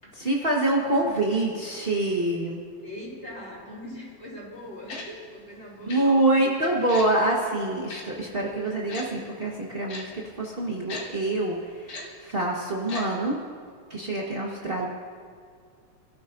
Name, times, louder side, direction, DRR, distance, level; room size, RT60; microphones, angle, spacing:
voice 1, 0.1-2.6 5.9-13.4 13.9-14.9, right 2 dB, 65° right, -4 dB, 0.5 m, -26 dB
voice 2, 2.8-6.6, left 1 dB, 20° left, -5 dB, 4.0 m, -41 dB
Tick-tock, 4.9-5.0 5.9-6.0 6.9-7.1 7.9-8.0 8.9-9.0 9.9-10.0 10.9-11.0 11.9-12.0 12.9-13.0 13.3-13.4, left 3 dB, 65° left, 3.2 m, -36 dB
27.0 x 13.5 x 2.6 m, 2.1 s
omnidirectional pair, 3.5 m